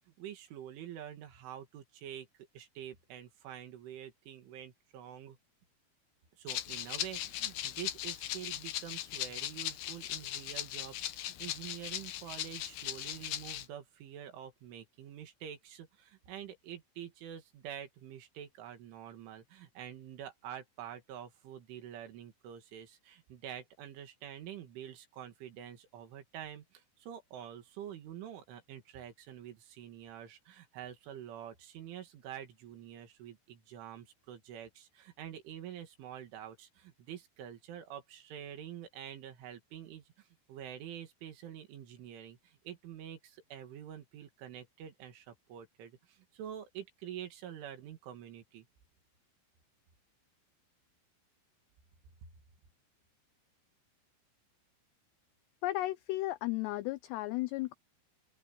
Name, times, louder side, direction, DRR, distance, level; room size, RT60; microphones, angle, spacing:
voice 1, 0.2-5.4 6.4-48.7, right 10 dB, 80° right, 4.7 m, -47 dB
Rattle (instrument), 6.5-13.7, left 13 dB, 70° left, 2.6 m, -39 dB
voice 2, 55.6-57.7, left 17 dB, 85° left, 2.4 m, -34 dB
open air
omnidirectional pair, 5.5 m